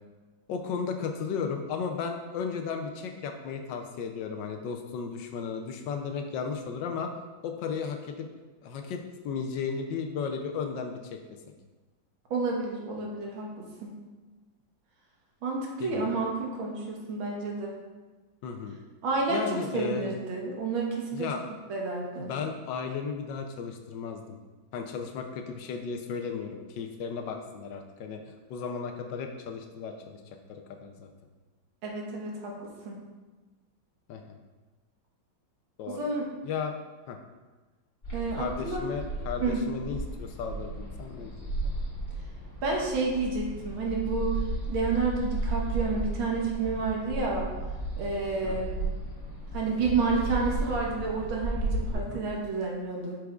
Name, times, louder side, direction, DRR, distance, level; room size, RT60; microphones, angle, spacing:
voice 1, 0.5-7.1 7.4-8.3 8.6-11.2 15.8-16.1 18.4-18.7 19.3-20.1 21.1-21.4 22.1-24.4 24.7-28.2 28.5-30.2 30.5-31.1 34.1-34.4 35.8-36.0 36.4-36.7 37.1-37.2 38.4-41.5 48.4-48.6 51.9-52.2, left 6 dB, 75° left, 4 dB, 1.2 m, -35 dB
voice 2, 12.3-13.9 15.4-17.7 19.0-19.4 19.7-21.3 21.7-22.3 31.8-33.0 35.9-36.3 38.1-38.8 39.4-39.6 42.6-44.4 44.7-47.5 48.0-48.8 49.5-53.2, right 4 dB, 85° right, -1 dB, 2.0 m, -30 dB
sound 1, 38.0-51.9, right 2 dB, 30° left, 1.9 m, -34 dB
8.0 x 6.1 x 2.3 m, 1.3 s
omnidirectional pair, 2.2 m